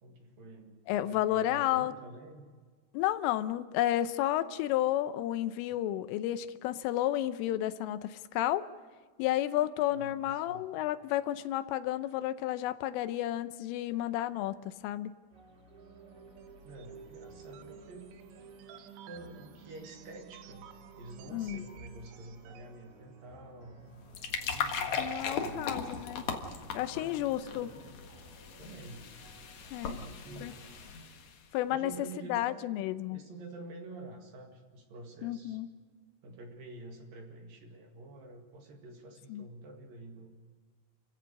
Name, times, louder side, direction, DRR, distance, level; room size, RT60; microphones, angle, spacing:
voice 1, 0.0-2.5 9.9-10.7 16.6-18.2 19.0-23.8 24.5-26.1 26.9-27.9 28.6-29.1 29.8-30.5 31.7-32.8 33.1-35.6 36.2-40.4, right 2 dB, 55° right, 3 dB, 3.3 m, -49 dB
voice 2, 0.9-1.9 2.9-8.7 9.2-15.2 21.3-21.7 25.0-26.2 26.8-27.7 29.7-30.0 30.4-30.5 31.5-31.9 32.3-33.2 35.2-35.7 39.3-39.4, left 13 dB, 90° left, 13 dB, 3.4 m, -31 dB
sound 1, 15.3-30.9, right 2 dB, 20° right, 4.1 m, -56 dB
sound 2, 15.7-22.8, right 8 dB, 75° right, 3.1 m, -52 dB
sound 3, 23.9-31.4, left 6 dB, 60° left, 1.9 m, -38 dB
30.0 x 15.5 x 6.5 m, 1.5 s
omnidirectional pair, 5.6 m